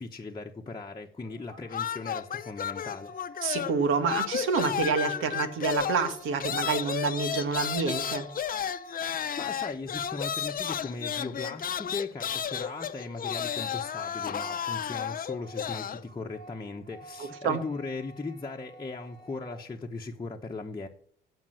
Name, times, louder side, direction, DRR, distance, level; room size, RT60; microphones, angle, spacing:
voice 1, 0.0-3.1 9.0-20.9, left 3 dB, 20° left, 0 dB, 1.0 m, -38 dB
sound 1, 0.9-9.7 12.0-19.7, right 1 dB, 65° right, 4.2 m, -51 dB
sound 2, 1.7-16.0, left 8 dB, 45° left, 0.7 m, -33 dB
voice 2, 3.4-8.3 17.4-17.6, right 5 dB, 85° right, 10 dB, 1.6 m, -28 dB
15.5 x 5.4 x 7.6 m, 0.62 s
cardioid pair, 90°, 20 cm